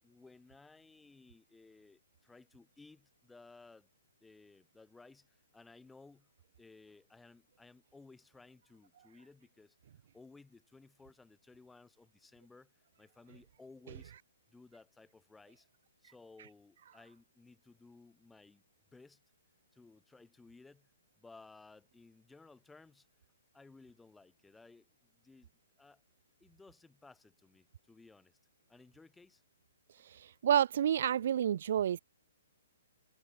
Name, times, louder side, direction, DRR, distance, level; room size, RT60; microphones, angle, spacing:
voice 1, 0.0-3.9 4.2-6.3 6.6-9.8 10.1-14.1 14.5-15.7 16.0-18.6 18.9-19.2 19.7-20.9 21.2-23.1 23.5-25.5 25.8-26.0 26.4-28.4 28.7-29.4 30.0-30.2, left 3 dB, 5° left, 4.5 m, -59 dB
voice 2, 30.0-32.0, right 9 dB, 55° right, 0.6 m, -29 dB
hypercardioid pair, 130°, 0 cm